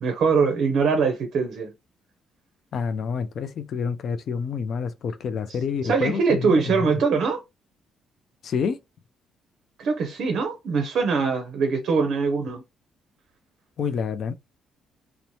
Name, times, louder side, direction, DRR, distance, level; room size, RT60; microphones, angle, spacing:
voice 1, 0.0-1.7 5.8-7.4 9.8-12.6, right 5 dB, 50° right, 0.5 m, -22 dB
voice 2, 2.7-6.9 8.4-8.8 13.8-14.3, left 6 dB, 40° left, 0.3 m, -28 dB
3.0 x 2.0 x 2.6 m
cardioid pair, 180°, 0 cm